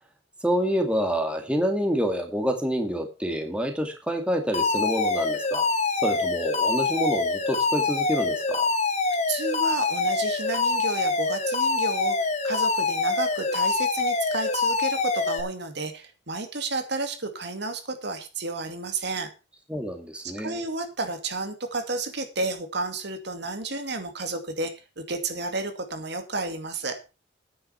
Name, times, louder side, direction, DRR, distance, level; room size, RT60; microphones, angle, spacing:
voice 1, 0.4-5.7 6.0-8.7 19.7-20.6, equal, 5° right, 4 dB, 2.2 m, -27 dB
Alarm, 4.5-15.4, left 3 dB, 35° left, 2.2 m, -25 dB
voice 2, 9.3-12.2 12.4-19.3 20.2-27.0, right 3 dB, 60° right, 6 dB, 2.4 m, -31 dB
9.9 x 9.9 x 5.6 m, 0.30 s
head